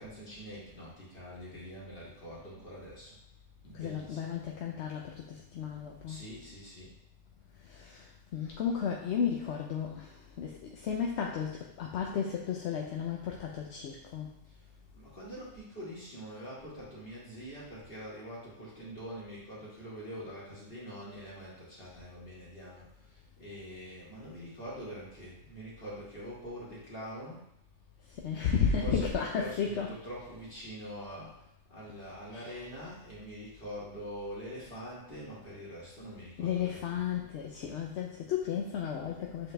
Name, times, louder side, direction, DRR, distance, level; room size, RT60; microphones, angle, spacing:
voice 1, 0.0-3.1 3.6-4.3 6.0-6.9 14.4-14.7 14.9-27.4 28.8-37.0, equal, 45° left, -7 dB, 2.4 m, -44 dB
voice 2, 3.7-6.2 7.7-8.1 8.3-14.3 28.2-29.9 32.3-32.5 36.4-39.5, left 7 dB, 65° left, 0 dB, 0.9 m, -33 dB
7.4 x 4.2 x 3.3 m, 0.81 s
omnidirectional pair, 1.3 m